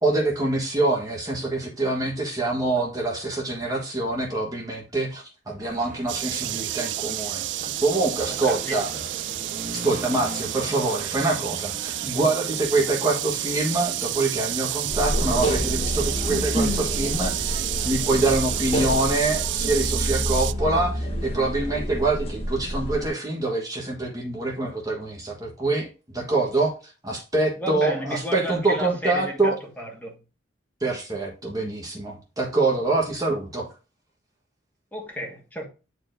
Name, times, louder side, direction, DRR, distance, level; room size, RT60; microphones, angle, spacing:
voice 1, 0.0-7.5 7.8-8.9 9.7-25.9 26.1-29.6 30.8-33.7, right 2 dB, 20° right, 1.3 m, -25 dB
sound 1, 5.6-19.1, right 2 dB, 40° right, 1.0 m, -40 dB
sound 2, 6.1-20.5, right 15 dB, 65° right, 0.4 m, -30 dB
voice 2, 8.3-8.8 27.6-30.2 34.9-35.7, right 1 dB, 10° left, 1.6 m, -33 dB
sound 3, 14.9-23.1, equal, 30° left, 1.3 m, -28 dB
9.7 x 4.5 x 2.6 m
head